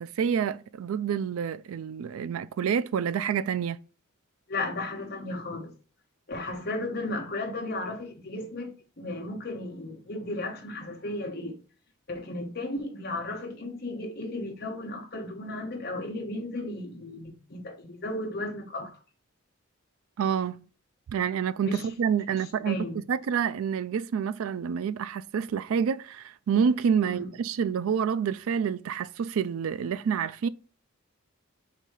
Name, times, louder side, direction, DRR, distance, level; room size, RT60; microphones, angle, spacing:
voice 1, 0.0-3.8 20.2-20.7 21.1-30.5, right 7 dB, 75° right, 0.3 m, -28 dB
voice 2, 4.5-5.7 6.3-11.6 12.1-19.0 21.6-21.9 22.3-23.0 27.0-27.3, left 2 dB, 50° left, 1.0 m, -35 dB
4.1 x 2.7 x 4.6 m
head